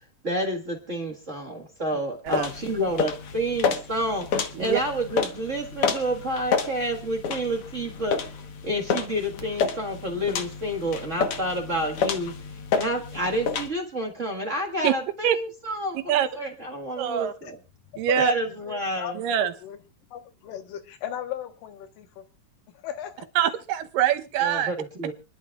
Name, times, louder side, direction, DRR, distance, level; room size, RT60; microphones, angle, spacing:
voice 1, 0.2-8.2 8.6-12.3 12.7-17.6 18.2-19.2 24.4-25.1, right 1 dB, 40° right, 1.1 m, -29 dB
sound 1, 2.3-13.7, left 5 dB, 60° left, 1.6 m, -30 dB
voice 2, 17.0-17.3 18.0-18.3 19.2-19.5 23.4-24.7, right 10 dB, 80° right, 2.5 m, -24 dB
voice 3, 18.7-19.8 20.1-22.2 22.8-23.3, left 10 dB, 85° left, 2.8 m, -36 dB
27.0 x 11.0 x 2.4 m
omnidirectional pair, 3.9 m